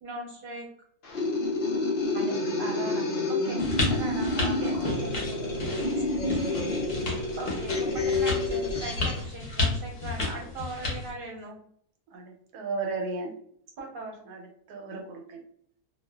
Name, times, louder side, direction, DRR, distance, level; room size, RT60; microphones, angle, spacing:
voice 1, 0.0-0.7 2.1-3.6 3.9-4.7 5.0-5.2 5.7-5.9 7.4-11.6 13.8-14.2, right 2 dB, 45° right, 0.8 m, -39 dB
sound 1, 1.0-9.2, left 2 dB, 85° left, 0.4 m, -29 dB
sound 2, 3.6-11.1, left 3 dB, 50° left, 0.8 m, -32 dB
voice 2, 4.3-6.5, right 1 dB, 70° right, 0.3 m, -45 dB
voice 3, 12.1-13.3 14.3-14.4 14.7-15.4, right 3 dB, 90° right, 1.2 m, -34 dB
2.4 x 2.3 x 2.2 m
omnidirectional pair, 1.7 m